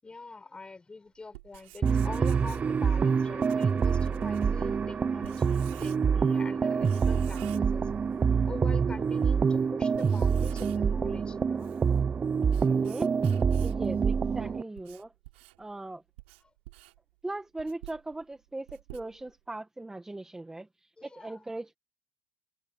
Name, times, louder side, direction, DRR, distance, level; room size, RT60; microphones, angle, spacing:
voice 1, 0.0-7.9 8.4-11.8 14.1-14.6 16.4-16.5 21.0-21.4, left 3 dB, 15° left, 7.5 m, -45 dB
Writing, 1.2-6.3 6.8-8.3 8.6-8.7 9.3-9.4 9.8-11.0 11.4-13.9 14.5-19.5, right 22 dB, 85° right, 4.7 m, -51 dB
sound 1, 1.8-14.6, right 6 dB, 25° right, 0.6 m, -26 dB
voice 2, 12.6-13.1 13.6-15.1 15.6-16.0 17.2-21.7, right 2 dB, 10° right, 1.9 m, -39 dB
supercardioid pair, 110°, 6 cm